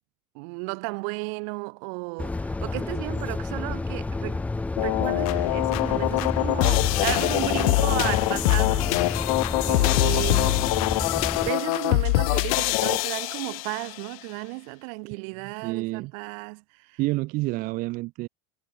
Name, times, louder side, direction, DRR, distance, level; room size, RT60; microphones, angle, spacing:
voice 1, 0.3-4.5 4.8-8.9 9.6-10.7 11.4-17.0, right 38 dB, 65° right, 7.2 m, -33 dB
sound 1, 2.2-11.5, left 3 dB, 5° left, 0.9 m, -30 dB
sound 2, 4.8-14.0, left 26 dB, 75° left, 1.0 m, -24 dB
voice 2, 15.0-16.1 17.0-18.3, right 21 dB, 50° right, 4.7 m, -29 dB
cardioid pair, 150°, 18 cm